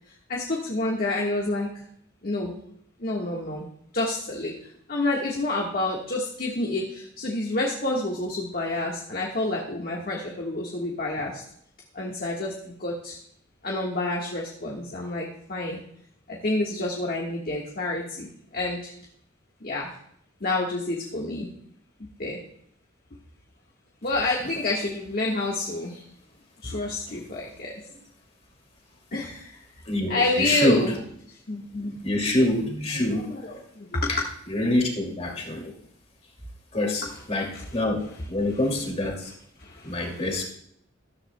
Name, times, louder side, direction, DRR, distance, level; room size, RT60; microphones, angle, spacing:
voice 1, 0.1-1.7 2.2-2.6 3.0-3.6 3.9-11.4 11.9-13.2 13.6-15.8 16.3-18.9 19.6-19.9 20.4-21.5 22.2-22.4 24.0-26.0 26.6-27.8 29.1-29.6 30.1-31.0 31.3-32.0 32.7-34.1 37.5-37.6 39.6-40.2, left 2 dB, 50° left, -2 dB, 1.5 m, -29 dB
voice 2, 29.9-30.8 32.0-33.3 34.1-34.2 34.5-35.7 36.7-39.3 39.8-40.4, left 1 dB, 35° left, 0 dB, 2.5 m, -26 dB
13.5 x 13.0 x 2.2 m, 0.68 s
head